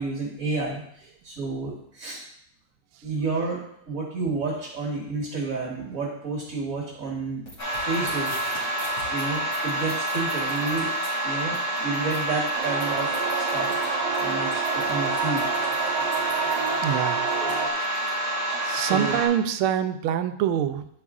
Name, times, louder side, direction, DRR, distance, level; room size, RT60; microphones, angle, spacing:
voice 1, 0.0-2.2 3.0-7.5 7.7-8.5 9.1-10.9 11.2-13.9 14.2-15.5 17.4-17.8 18.7-19.2, right 3 dB, 40° right, -3 dB, 1.7 m, -31 dB
sound 1, 7.5-18.1, equal, 45° left, 2.9 m, -44 dB
sound 2, 7.6-19.3, right 1 dB, 65° left, 4.3 m, -28 dB
sound 3, 12.5-17.7, right 6 dB, 60° right, 1.3 m, -29 dB
voice 2, 16.8-17.2 18.6-20.9, right 10 dB, 80° right, 9 dB, 1.4 m, -25 dB
10.5 x 4.8 x 3.6 m, 0.69 s
omnidirectional pair, 2.4 m